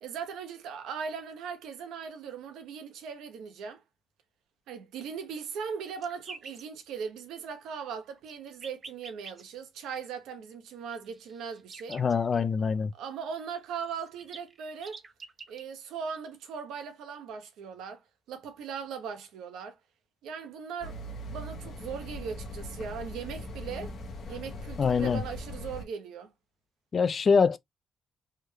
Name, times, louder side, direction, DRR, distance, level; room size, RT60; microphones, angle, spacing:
voice 1, 0.0-3.8 4.7-12.0 12.9-15.0 15.5-18.0 18.3-19.8 20.2-21.0 21.3-23.9 24.3-26.3, right 6 dB, 85° right, 0.8 m, -39 dB
sound 1, 6.0-6.6 8.1-9.4 10.9-12.3 13.6-13.7 13.8-15.6, right 4 dB, 35° right, 0.5 m, -47 dB
voice 2, 11.9-12.9 24.8-25.2 26.9-27.6, left 5 dB, 45° left, 0.4 m, -24 dB
sound 2, 20.8-25.8, left 1 dB, 60° left, 0.9 m, -40 dB
3.4 x 2.2 x 3.1 m
cardioid pair, 90°, 0 cm